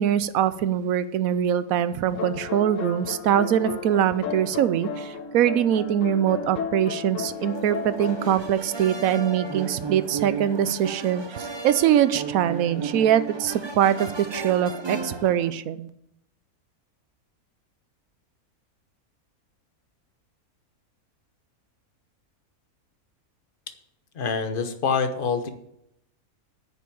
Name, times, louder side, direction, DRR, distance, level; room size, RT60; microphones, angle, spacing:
voice 1, 0.0-15.9, right 10 dB, 75° right, 14 dB, 1.1 m, -23 dB
sound 1, 2.1-8.3, left 6 dB, 60° left, 1.3 m, -34 dB
sound 2, 7.2-15.5, right 4 dB, 25° right, 0.7 m, -34 dB
voice 2, 24.1-25.5, left 5 dB, 40° left, 8 dB, 1.1 m, -25 dB
9.2 x 7.0 x 8.6 m, 0.79 s
omnidirectional pair, 1.5 m